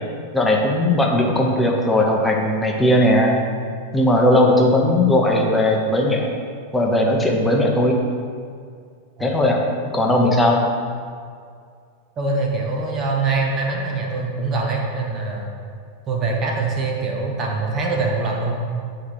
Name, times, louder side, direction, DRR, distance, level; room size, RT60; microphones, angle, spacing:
voice 1, 0.3-3.3 3.9-6.3 6.7-8.0 9.2-9.7 9.9-10.6, left 1 dB, 10° left, 0 dB, 1.0 m, -18 dB
voice 2, 12.2-15.5 16.1-18.6, right 3 dB, 30° right, -1 dB, 1.1 m, -23 dB
8.5 x 4.8 x 4.7 m, 2.2 s
figure-of-eight pair, 90°, 0 cm